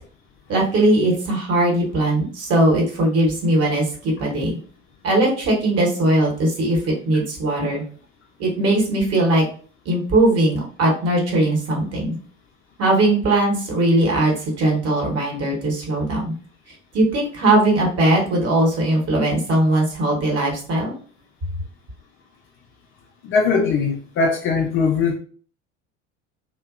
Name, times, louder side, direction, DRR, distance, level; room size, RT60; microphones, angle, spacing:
voice 1, 0.5-4.6 5.0-7.8 8.4-9.4 9.8-12.2 12.8-16.3 16.9-20.9, right 1 dB, 40° right, -1 dB, 1.1 m, -19 dB
voice 2, 23.2-25.2, left 4 dB, 35° left, 2 dB, 0.4 m, -20 dB
2.6 x 2.1 x 2.4 m, 0.44 s
figure-of-eight pair, 65°, 39 cm